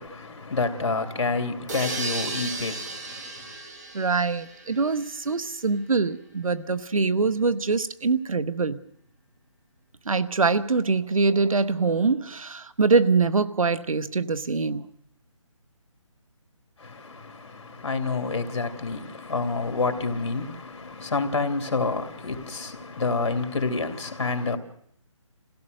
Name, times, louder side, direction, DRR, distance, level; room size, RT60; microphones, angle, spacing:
voice 1, 0.0-3.5 16.8-24.6, left 3 dB, 55° left, 2.7 m, -28 dB
sound 1, 1.7-5.4, right 3 dB, 30° right, 2.5 m, -35 dB
voice 2, 3.9-8.8 10.1-14.9, right 4 dB, 85° right, 1.3 m, -24 dB
27.0 x 16.5 x 6.6 m
hypercardioid pair, 175°, 17 cm